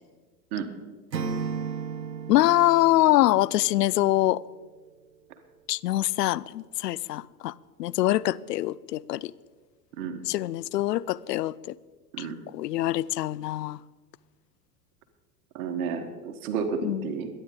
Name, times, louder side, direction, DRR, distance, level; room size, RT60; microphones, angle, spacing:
Acoustic guitar / Strum, 1.1-4.2, right 5 dB, 90° right, 1.0 m, -35 dB
voice 1, 2.3-4.4 5.7-9.3 10.3-11.7 12.2-12.3 12.5-13.8 16.8-17.1, left 15 dB, 75° left, 0.5 m, -24 dB
voice 2, 15.5-17.3, right 6 dB, 60° right, 1.6 m, -31 dB
22.5 x 9.9 x 3.7 m
hypercardioid pair, 90°, 49 cm